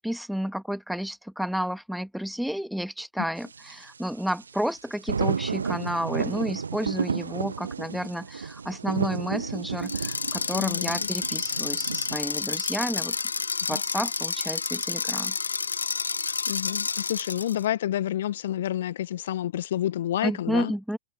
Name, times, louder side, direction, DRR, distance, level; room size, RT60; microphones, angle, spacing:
voice 1, 0.0-13.2 13.7-15.3 20.2-21.0, equal, ahead, 2.0 m, -31 dB
sound 1, 3.4-12.2, right 5 dB, 75° right, 1.0 m, -32 dB
sound 2, 9.8-17.6, left 5 dB, 75° left, 0.9 m, -30 dB
voice 2, 10.5-10.9 13.7-13.8 16.5-20.7, left 12 dB, 60° left, 1.6 m, -29 dB
figure-of-eight pair, 90°, 0 cm